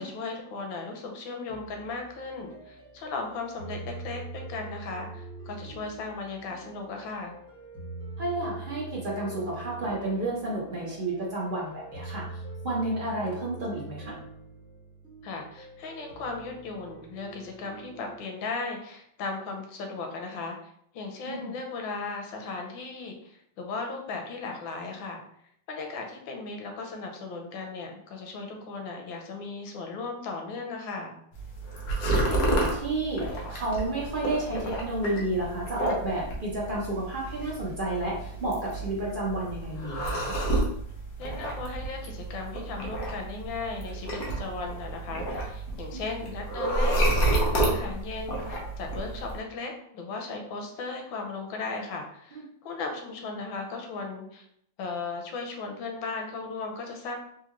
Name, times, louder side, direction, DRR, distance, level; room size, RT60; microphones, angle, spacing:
voice 1, 0.0-7.4 15.2-20.6 20.9-25.2 25.7-31.2 41.2-54.5 54.8-57.2, left 3 dB, 85° left, 2 dB, 1.5 m, -36 dB
sound 1, 1.5-18.2, right 3 dB, 5° left, 0.7 m, -44 dB
voice 2, 8.2-12.3 12.6-14.2 21.2-21.5 32.3-40.4 45.9-46.0, right 2 dB, 55° right, -5 dB, 0.5 m, -31 dB
sound 2, 31.3-49.4, right 1 dB, 60° left, 1.1 m, -30 dB
4.0 x 2.4 x 2.9 m, 0.70 s
omnidirectional pair, 2.0 m